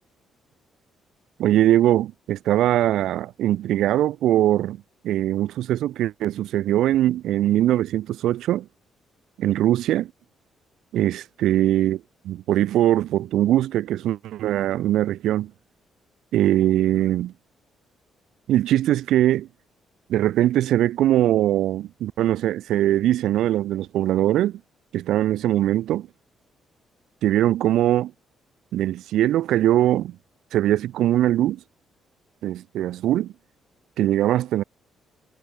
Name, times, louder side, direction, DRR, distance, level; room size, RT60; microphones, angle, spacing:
voice 1, 1.4-8.7 9.4-10.1 10.9-15.5 16.3-17.3 18.5-19.5 20.1-24.6 24.9-26.1 27.2-28.1 28.7-30.2 30.5-31.6 32.4-33.3 34.0-34.6, right 13 dB, 80° right, 1.2 m, -21 dB
cardioid pair, 90°, 0 cm